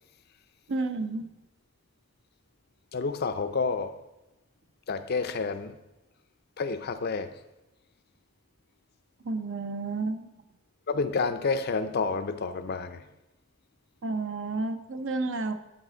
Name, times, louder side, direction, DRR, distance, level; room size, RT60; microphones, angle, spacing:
voice 1, 0.7-1.3 9.2-10.3 14.0-15.5, right 3 dB, 60° right, 0.6 m, -31 dB
voice 2, 2.9-4.0 4.9-5.8 6.6-7.3 10.9-13.0, left 4 dB, 50° left, 0.5 m, -29 dB
11.0 x 4.1 x 5.0 m
head